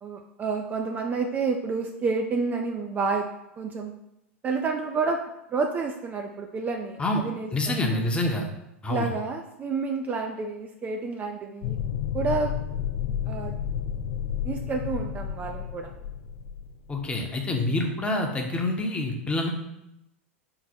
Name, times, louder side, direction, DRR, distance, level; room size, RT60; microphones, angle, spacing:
voice 1, 0.0-3.3 3.6-3.9 4.4-5.2 5.5-8.1 8.9-11.8 12.1-12.5 13.3-13.6 14.4-15.9, right 4 dB, 25° right, 4 dB, 0.3 m, -29 dB
voice 2, 7.5-8.4 8.8-9.1 16.9-19.5, left 2 dB, 15° left, 2 dB, 0.7 m, -26 dB
sound 1, 11.6-17.1, left 9 dB, 50° left, 0.3 m, -31 dB
4.7 x 2.1 x 4.2 m, 0.86 s
hypercardioid pair, 95°, 7 cm